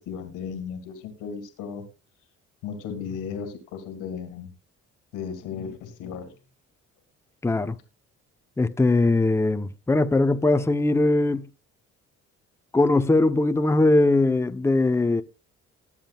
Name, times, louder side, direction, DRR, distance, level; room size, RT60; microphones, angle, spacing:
voice 1, 0.1-1.8 2.6-4.5 5.1-6.3, left 6 dB, 90° left, 2.3 m, -35 dB
voice 2, 7.4-7.7 8.6-11.5 12.7-15.2, left 2 dB, 10° left, 0.7 m, -20 dB
20.5 x 7.3 x 2.3 m
supercardioid pair, 75°, 30 cm